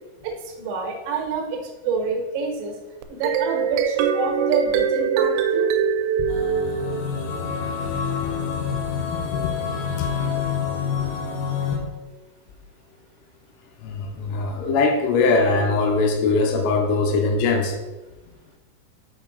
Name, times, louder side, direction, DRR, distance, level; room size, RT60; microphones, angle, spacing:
voice 1, 0.2-2.8 3.1-5.7, right 5 dB, 70° right, 3.3 m, -27 dB
sound 1, 3.0-7.4, right 7 dB, 90° right, 3.2 m, -23 dB
sound 2, 6.3-11.8, left 6 dB, 70° left, 2.8 m, -27 dB
voice 2, 8.2-9.6 10.0-10.1 11.0-11.1 11.7-11.8 13.8-17.8, left 3 dB, 85° left, 3.2 m, -22 dB
6.7 x 6.3 x 3.9 m
omnidirectional pair, 5.9 m